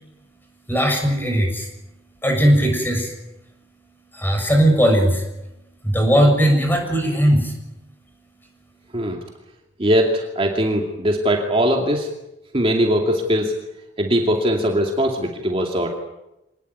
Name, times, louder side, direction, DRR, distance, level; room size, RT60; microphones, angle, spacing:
voice 1, 0.7-1.7 2.2-3.1 4.1-5.2 5.8-7.5, equal, 10° left, 4 dB, 6.7 m, -18 dB
voice 2, 9.8-12.1 12.5-13.5 14.0-15.9, equal, 30° right, 1 dB, 2.5 m, -20 dB
26.0 x 19.5 x 9.4 m, 0.93 s
head